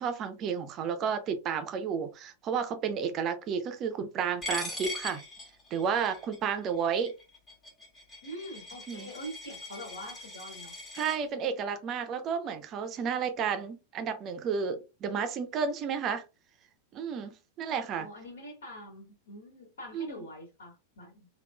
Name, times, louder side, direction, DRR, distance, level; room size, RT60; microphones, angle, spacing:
voice 1, 0.0-5.2 5.7-7.1 8.9-9.1 10.9-16.2 16.9-17.3 17.6-18.1 19.9-20.2, right 6 dB, 35° right, 0.5 m, -32 dB
Coin (dropping), 4.4-11.2, left 2 dB, 25° left, 1.3 m, -41 dB
voice 2, 8.2-10.7 18.0-21.3, equal, 65° left, 1.7 m, -44 dB
3.6 x 2.4 x 2.3 m
figure-of-eight pair, 90°, 0 cm